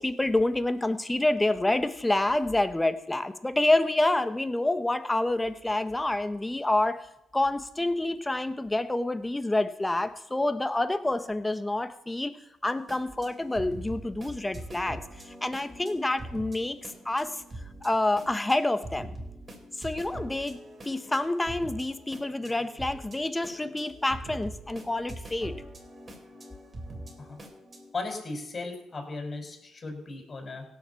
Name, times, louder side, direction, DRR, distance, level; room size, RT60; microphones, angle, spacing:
voice 1, 0.0-7.1 7.3-12.4 12.6-16.8 17.0-17.4 17.8-19.1 19.8-20.6 20.8-25.6, left 2 dB, 15° left, 10 dB, 1.4 m, -28 dB
sound 1, 12.6-27.9, right 1 dB, 35° right, 4.2 m, -44 dB
voice 2, 27.9-30.6, left 3 dB, 35° left, 3 dB, 5.9 m, -36 dB
17.0 x 7.8 x 7.2 m, 0.87 s
supercardioid pair, 60°, 0 cm